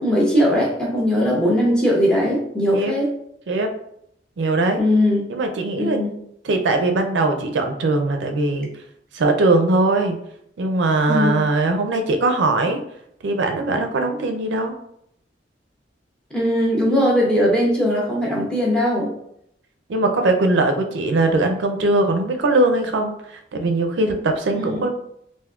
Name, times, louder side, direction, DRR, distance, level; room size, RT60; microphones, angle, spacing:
voice 1, 0.0-3.1 4.8-5.3 5.8-6.1 11.1-11.5 16.3-19.1 24.5-24.9, equal, 5° left, -3 dB, 0.7 m, -19 dB
voice 2, 4.4-4.8 5.3-6.0 6.4-8.7 9.1-10.2 10.6-12.8 13.2-14.7 19.9-24.9, right 2 dB, 75° right, 5 dB, 0.4 m, -20 dB
3.5 x 2.5 x 2.3 m, 0.73 s
head